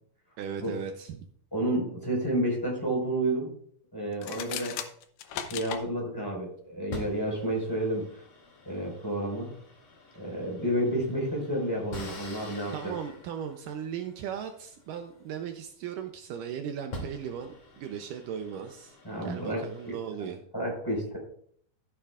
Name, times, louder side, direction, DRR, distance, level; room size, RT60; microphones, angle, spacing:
voice 1, 0.4-1.3 12.7-20.4, right 8 dB, 85° right, 6 dB, 1.8 m, -37 dB
voice 2, 1.5-3.5 3.9-4.8 5.3-8.2 8.6-9.5 10.1-12.9 19.0-19.9 20.5-21.2, right 1 dB, 5° left, -2 dB, 4.5 m, -30 dB
sound 1, 4.1-5.8, left 9 dB, 75° left, 2.1 m, -36 dB
sound 2, 5.5-6.2 6.9-16.0 16.5-16.6 16.9-20.0, left 1 dB, 45° left, 3.6 m, -46 dB
14.0 x 10.0 x 2.5 m, 0.63 s
omnidirectional pair, 4.7 m